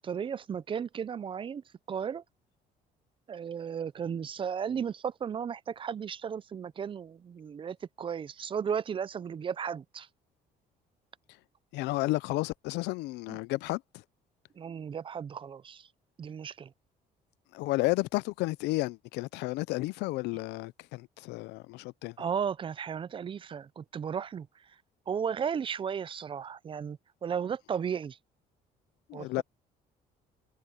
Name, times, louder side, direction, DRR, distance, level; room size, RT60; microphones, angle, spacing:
voice 1, 0.0-2.2 3.3-10.1 13.3-13.4 14.6-15.9 16.2-16.7 22.2-24.8 25.1-28.2 29.1-29.4, right 7 dB, 30° right, 0.5 m, -35 dB
voice 2, 11.7-14.0 17.5-22.2 29.1-29.4, left 20 dB, 85° left, 0.5 m, -32 dB
cardioid pair, 110°, 17 cm